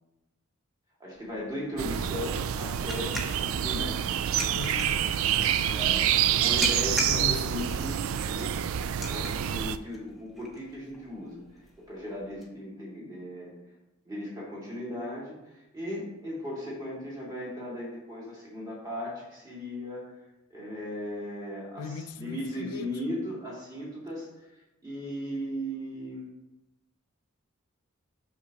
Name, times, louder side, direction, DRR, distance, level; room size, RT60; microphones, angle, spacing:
voice 1, 1.0-4.0 5.7-6.0 6.4-8.0 8.3-8.5 8.9-11.4 11.9-13.5 14.0-20.0 20.5-24.3 24.8-26.3, equal, 15° right, 2.0 m, -37 dB
sound 1, 1.1-12.4, left 1 dB, ahead, 0.8 m, -41 dB
sound 2, 1.8-9.8, right 10 dB, 65° right, 0.3 m, -27 dB
voice 2, 4.5-5.8 6.8-7.4 21.8-22.9, left 5 dB, 85° left, 0.4 m, -39 dB
8.1 x 6.0 x 2.9 m
head